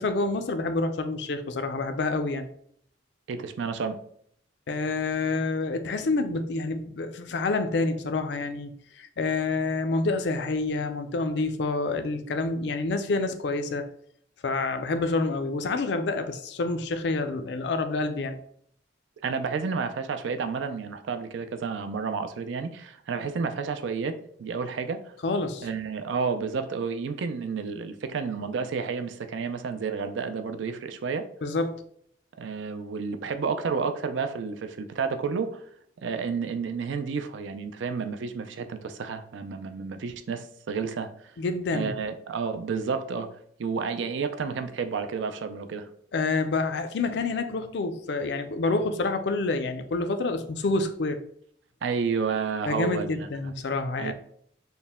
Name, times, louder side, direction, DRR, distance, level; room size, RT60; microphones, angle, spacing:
voice 1, 0.0-2.5 4.7-13.9 14.4-18.4 25.2-25.7 31.4-31.8 41.4-42.0 46.1-51.2 52.7-54.1, left 3 dB, 65° left, 8 dB, 0.4 m, -28 dB
voice 2, 3.3-4.0 19.2-25.1 25.6-31.3 32.4-35.6 36.0-41.3 41.7-43.3 43.6-45.9 51.8-53.3 54.0-54.1, right 5 dB, 80° right, 9 dB, 0.4 m, -31 dB
4.3 x 2.1 x 3.5 m, 0.64 s
head